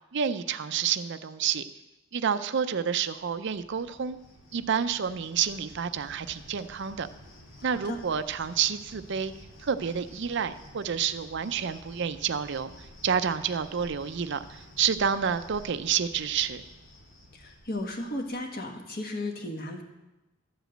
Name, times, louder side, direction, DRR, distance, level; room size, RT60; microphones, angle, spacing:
voice 1, 0.1-1.6 2.1-4.2 4.5-7.1 7.6-9.3 9.6-16.6, right 7 dB, 65° right, 12 dB, 0.5 m, -29 dB
Cricket, 2.8-18.5, equal, 90° left, 2.0 m, -51 dB
voice 2, 7.6-8.0 17.3-19.8, left 1 dB, 50° left, 3 dB, 1.5 m, -35 dB
12.5 x 5.1 x 7.8 m, 1.0 s
head